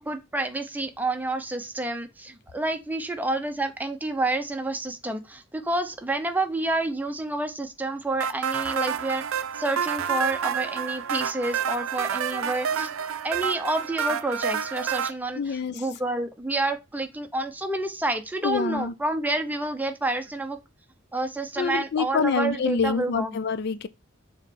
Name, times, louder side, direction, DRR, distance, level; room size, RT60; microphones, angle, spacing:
voice 1, 0.0-12.9 13.2-20.6 21.1-23.4, right 2 dB, 10° right, 0.6 m, -29 dB
sound 1, 8.2-15.1, right 8 dB, 85° right, 0.5 m, -28 dB
voice 2, 15.4-15.8 18.4-18.9 21.6-23.9, left 5 dB, 50° left, 0.4 m, -26 dB
7.0 x 3.1 x 5.3 m
head